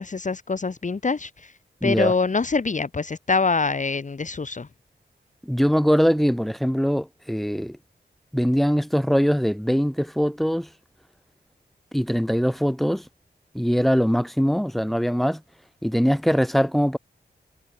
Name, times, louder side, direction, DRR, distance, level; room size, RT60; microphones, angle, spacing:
voice 1, 0.0-1.5 1.8-4.7, left 4 dB, 45° left, 1.7 m, -25 dB
voice 2, 1.8-2.1 5.4-7.8 8.3-10.7 11.9-13.0 13.5-15.4 15.8-17.0, equal, ahead, 7.8 m, -22 dB
wide cardioid pair, 105°, 18 cm